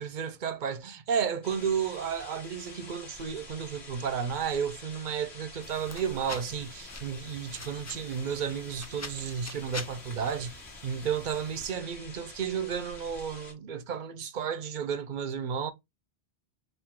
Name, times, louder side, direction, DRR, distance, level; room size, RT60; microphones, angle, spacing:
voice 1, 0.0-15.7, right 7 dB, 55° right, 0.7 m, -32 dB
sound 1, 1.4-13.5, left 2 dB, 85° left, 1.8 m, -47 dB
sound 2, 5.6-11.7, left 3 dB, 25° left, 0.3 m, -45 dB
5.2 x 2.6 x 3.5 m
omnidirectional pair, 1.1 m